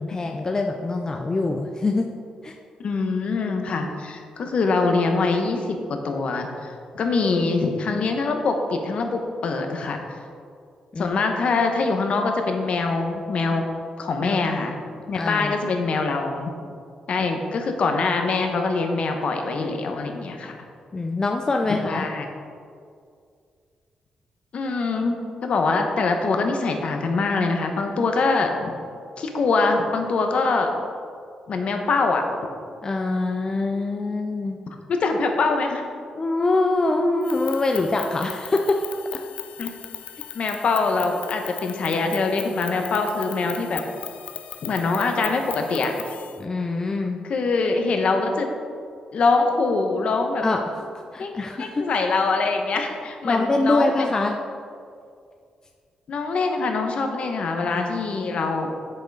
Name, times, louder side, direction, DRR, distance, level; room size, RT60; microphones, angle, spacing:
voice 1, 0.0-2.1 2.4-2.6 7.4-7.5 7.9-8.0 10.9-11.2 14.2-14.4 15.1-15.6 17.2-17.3 20.9-22.1 32.8-34.6 36.2-38.8 46.4-47.2 50.4-50.6 51.1-51.8 53.2-54.3 57.7-58.5, left 2 dB, 25° left, 3 dB, 0.5 m, -24 dB
voice 2, 2.8-5.8 6.0-10.2 11.0-13.6 14.0-14.8 15.1-16.5 17.1-20.6 21.9-22.3 24.5-25.1 25.4-28.7 29.2-30.7 31.5-32.2 34.9-35.8 39.6-39.7 40.3-43.8 44.6-45.9 47.2-48.5 49.1-50.4 51.2-54.1 56.1-58.7, left 3 dB, 60° left, 4 dB, 1.1 m, -24 dB
sound 1, 37.2-46.4, left 10 dB, 80° left, 0.4 m, -38 dB
8.0 x 6.6 x 4.8 m, 2.3 s
cardioid pair, 105°, 2 cm